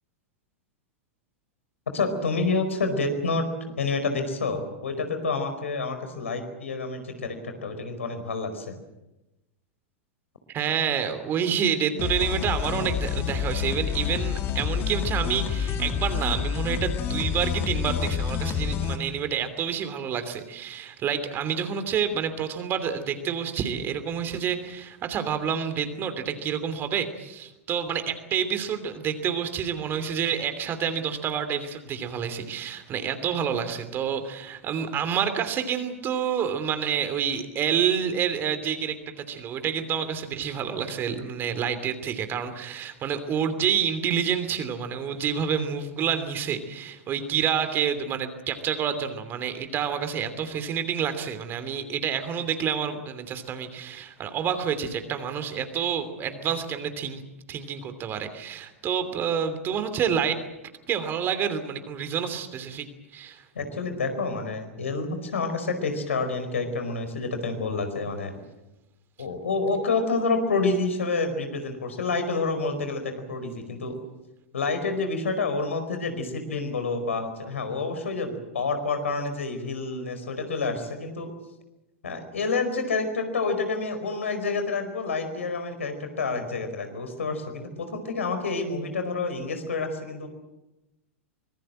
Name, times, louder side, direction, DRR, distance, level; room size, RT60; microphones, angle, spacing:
voice 1, 1.9-3.4 3.8-8.7 63.5-68.3 69.2-74.0 74.5-81.3 82.0-90.3, left 3 dB, 70° left, 7 dB, 4.8 m, -28 dB
voice 2, 10.5-57.2 57.5-60.5 60.9-62.9 63.1-63.4, right 8 dB, 30° right, 10 dB, 3.0 m, -28 dB
sound 1, 12.0-19.0, left 7 dB, 30° left, 2.5 m, -28 dB
25.0 x 21.5 x 7.7 m, 0.95 s
figure-of-eight pair, 95°, 7 cm